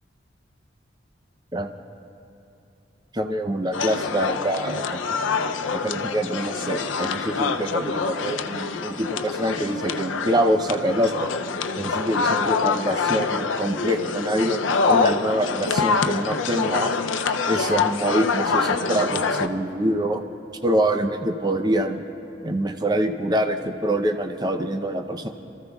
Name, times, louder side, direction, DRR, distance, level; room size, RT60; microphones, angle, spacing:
voice 1, 3.1-5.2 5.7-11.3 11.8-16.9 17.5-20.2 20.6-22.0 22.4-25.3, right 1 dB, 20° right, 5 dB, 0.6 m, -25 dB
sound 1, 3.7-19.5, left 4 dB, 90° left, 0.5 m, -25 dB
30.0 x 14.0 x 2.3 m, 2.9 s
head